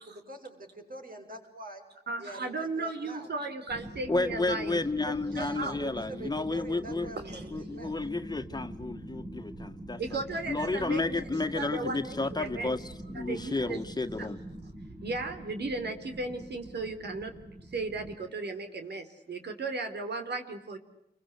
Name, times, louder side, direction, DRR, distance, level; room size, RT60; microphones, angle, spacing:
voice 1, 0.0-1.9 2.2-3.3 5.3-8.0, right 2 dB, 55° right, 4 dB, 7.9 m, -44 dB
voice 2, 2.1-5.7 7.3-7.4 10.0-11.2 11.5-12.7 13.1-13.8 14.2-14.3 15.0-20.8, right 3 dB, 80° right, 6 dB, 4.3 m, -36 dB
sound 1, 3.7-18.1, right 1 dB, 35° right, 5.7 m, -44 dB
voice 3, 4.1-7.1 7.5-10.2 10.5-14.4, left 3 dB, 25° left, 7 dB, 1.9 m, -32 dB
29.5 x 24.0 x 8.4 m, 0.80 s
wide cardioid pair, 100°, 17 cm